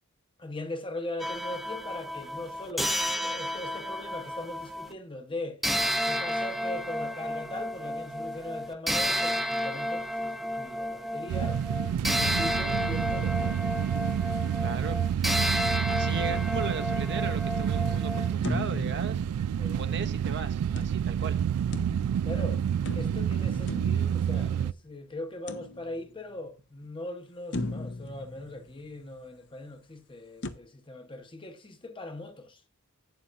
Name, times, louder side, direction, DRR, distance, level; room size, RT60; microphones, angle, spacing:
voice 1, 0.4-5.6 6.0-11.6 12.0-13.7 19.6-19.8 22.2-22.6 22.9-32.6, left 2 dB, 25° left, 1.0 m, -40 dB
sound 1, 1.2-4.9 5.6-18.3, equal, ahead, 0.6 m, -31 dB
sound 2, 11.3-24.7, right 8 dB, 85° right, 0.3 m, -29 dB
voice 2, 14.6-15.0 15.9-19.2 19.8-21.4, right 4 dB, 55° right, 0.9 m, -37 dB
sound 3, 18.4-20.0 20.8-22.4 22.8-24.8 25.5-26.3 26.8-26.9 27.5-29.2 30.4-30.5, left 2 dB, 55° left, 0.8 m, -38 dB
11.5 x 8.8 x 2.5 m
head